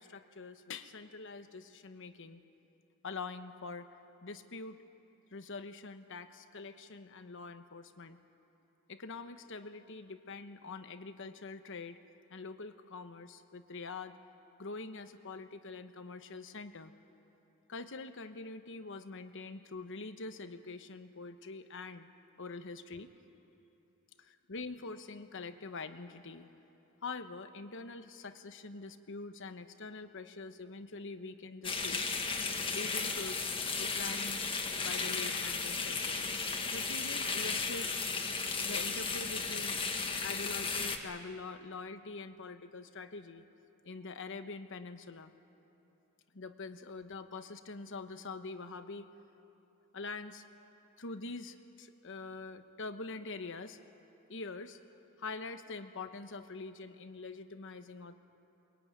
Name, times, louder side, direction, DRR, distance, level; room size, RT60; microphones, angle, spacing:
voice 1, 0.0-2.4 3.0-3.9 4.2-4.8 5.3-8.2 8.9-12.0 12.3-14.1 14.6-16.9 17.7-22.1 22.4-23.1 24.2-26.5 27.0-32.0 32.7-33.5 33.8-34.4 34.8-36.3 36.7-38.0 38.6-39.8 40.2-43.5 43.8-45.3 46.3-49.1 49.9-50.4 51.0-53.8 54.3-54.8 55.2-58.1, left 3 dB, 60° left, 9 dB, 1.1 m, -44 dB
sound 1, 31.6-41.0, left 4 dB, 25° left, 1.6 m, -35 dB
23.0 x 22.0 x 9.3 m, 2.9 s
head